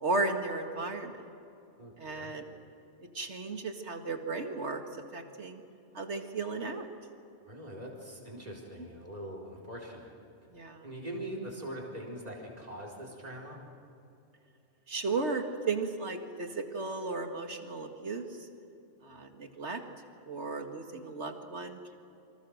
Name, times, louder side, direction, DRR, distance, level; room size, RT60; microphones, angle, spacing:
voice 1, 0.0-1.2 2.0-2.5 3.1-4.8 5.1-5.6 5.9-6.9 8.4-8.6 10.5-10.9 14.9-18.5 19.0-19.8 20.3-22.0, right 3 dB, 70° right, 5 dB, 2.4 m, -35 dB
voice 2, 1.8-2.3 7.5-10.1 10.8-13.6, right 1 dB, 35° right, -2 dB, 4.5 m, -42 dB
28.0 x 25.5 x 6.6 m, 2.8 s
omnidirectional pair, 1.2 m